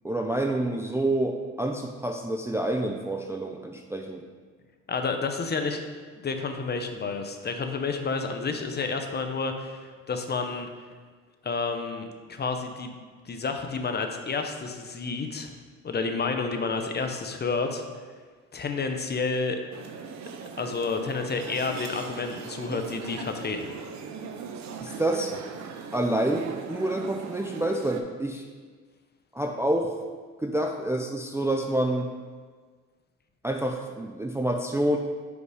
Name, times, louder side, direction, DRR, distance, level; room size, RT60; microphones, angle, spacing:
voice 1, 0.0-4.2 24.8-25.3 25.9-28.4 29.3-29.9 30.4-32.1 33.4-35.0, right 1 dB, 10° right, 2 dB, 0.4 m, -28 dB
voice 2, 4.9-5.8 6.2-10.7 11.4-12.9 13.2-15.5 15.8-17.8 18.5-19.6 20.6-23.7, left 4 dB, 35° left, 5 dB, 0.7 m, -30 dB
sound 1, 19.7-28.0, right 6 dB, 65° right, 0.7 m, -39 dB
5.1 x 4.8 x 4.9 m, 1.5 s
cardioid pair, 90°, 30 cm